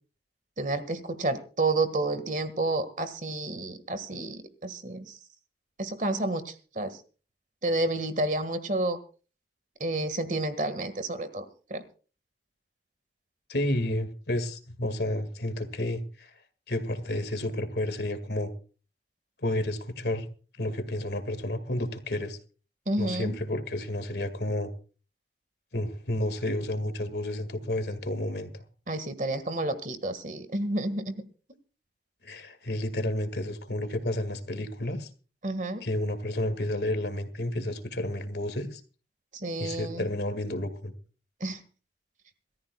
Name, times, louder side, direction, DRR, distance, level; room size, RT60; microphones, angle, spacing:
voice 1, 0.6-5.1 5.8-7.0 7.6-9.0 9.8-11.5 11.7-11.8 22.9-23.3 28.9-31.2 35.4-35.8 39.3-40.1 41.4-41.6, right 2 dB, 45° right, 1.7 m, -30 dB
voice 2, 13.5-16.3 16.7-18.5 19.4-20.3 20.6-22.4 23.0-24.7 25.7-28.6 32.2-35.1 35.8-38.8 39.6-40.9, left 1 dB, 70° left, 2.0 m, -31 dB
27.5 x 14.0 x 2.3 m
head